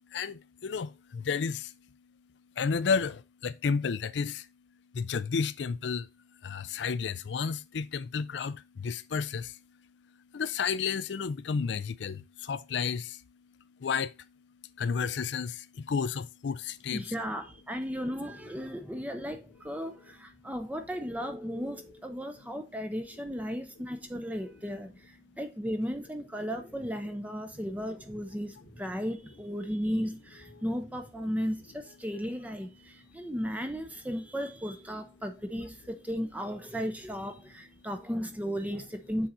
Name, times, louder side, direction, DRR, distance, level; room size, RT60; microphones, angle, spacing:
voice 1, 0.1-1.7 2.6-4.5 4.9-6.1 6.4-9.6 10.3-13.2 13.8-14.2 14.8-17.1 30.5-30.6, left 5 dB, 75° left, 0.4 m, -32 dB
voice 2, 16.9-39.3, equal, 10° right, 0.6 m, -35 dB
7.0 x 3.9 x 4.2 m
head